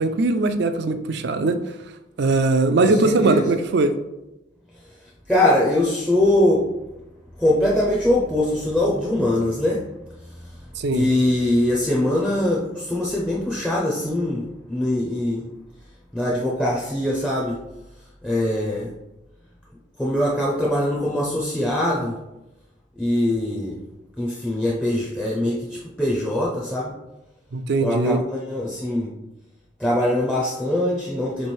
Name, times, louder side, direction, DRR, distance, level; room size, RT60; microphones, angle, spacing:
voice 1, 0.0-1.6 2.2-3.9 10.8-11.1 27.5-28.2, right 3 dB, 55° right, 9 dB, 0.4 m, -20 dB
voice 2, 2.8-3.5 5.3-6.7 7.4-9.8 10.9-14.4 14.7-15.5 16.1-17.6 18.2-18.9 20.0-22.2 23.0-23.8 24.2-26.9 27.8-29.1 29.8-31.5, left 1 dB, 5° left, -5 dB, 0.5 m, -22 dB
3.7 x 3.2 x 4.3 m, 0.95 s
head